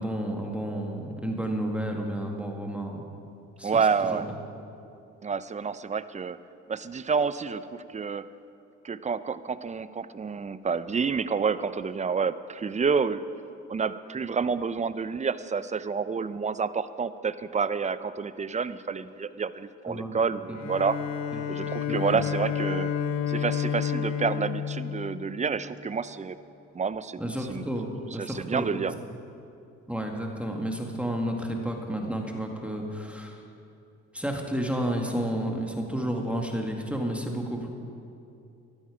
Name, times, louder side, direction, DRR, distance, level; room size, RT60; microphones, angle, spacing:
voice 1, 0.0-3.0 3.6-4.2 19.9-20.2 20.5-20.7 21.3-21.5 21.9-22.2 27.2-28.8 29.9-33.4 34.1-37.7, right 1 dB, 5° right, 1 dB, 1.9 m, -31 dB
voice 2, 3.6-4.3 5.2-6.4 6.7-8.3 8.8-13.2 13.7-21.0 21.5-22.9 23.3-26.4 26.7-27.2 27.5-27.7 28.2-28.9, right 5 dB, 25° right, 14 dB, 0.5 m, -29 dB
Bowed string instrument, 20.5-25.7, left 7 dB, 65° left, 1.0 m, -30 dB
14.5 x 12.0 x 4.9 m, 2.6 s
supercardioid pair, 70°, 31 cm